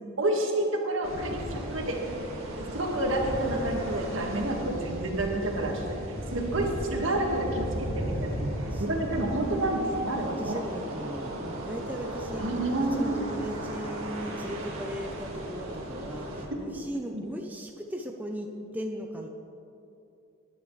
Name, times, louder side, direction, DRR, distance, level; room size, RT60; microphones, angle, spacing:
voice 1, 0.2-2.0 2.7-8.5 8.8-10.6 12.4-13.1 16.6-16.7 17.1-17.2, right 1 dB, 70° right, 1 dB, 1.8 m, -29 dB
sound 1, 1.0-16.5, right 1 dB, 90° right, 2.0 m, -35 dB
voice 2, 8.7-9.2 10.1-19.3, equal, 10° right, 2 dB, 0.6 m, -38 dB
20.0 x 10.0 x 3.3 m, 2.7 s
head